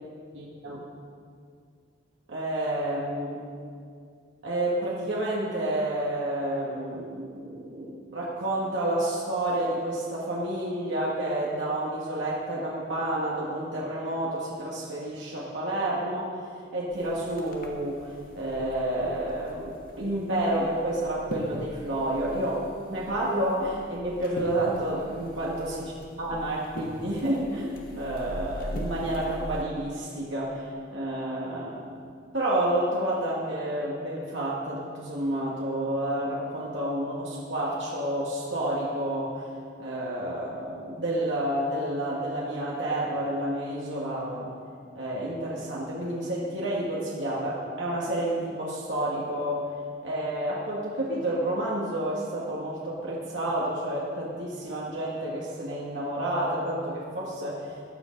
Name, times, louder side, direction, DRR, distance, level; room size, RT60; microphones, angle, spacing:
voice 1, 0.3-0.8 2.3-3.4 4.4-16.4 16.7-22.6 22.9-32.0 32.3-39.4 39.8-44.5 44.9-49.6 50.0-57.7, right 1 dB, 80° right, -5 dB, 2.0 m, -30 dB
sound 1, 16.9-29.6, equal, 50° left, 1.7 m, -41 dB
15.5 x 10.5 x 5.3 m, 2.3 s
head